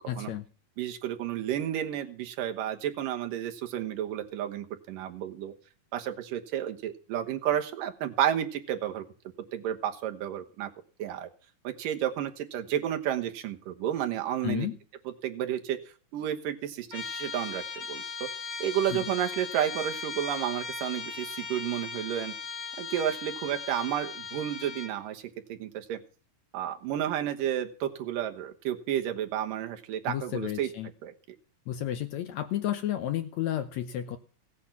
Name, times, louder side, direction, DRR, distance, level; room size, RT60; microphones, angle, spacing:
voice 1, 0.1-0.5 14.4-14.8 18.9-19.0 30.1-30.9 31.7-34.2, left 11 dB, 75° left, 10 dB, 1.8 m, -32 dB
voice 2, 0.8-5.5 5.9-9.0 9.5-10.7 11.0-11.3 11.6-14.7 15.2-15.8 16.1-18.3 18.6-22.3 22.8-25.2 25.5-26.0 26.5-30.7 31.0-31.1, right 10 dB, 85° right, 6 dB, 2.8 m, -31 dB
Trumpet, 16.9-25.0, left 5 dB, 30° left, 2.2 m, -38 dB
16.5 x 8.5 x 5.8 m, 0.41 s
omnidirectional pair, 3.8 m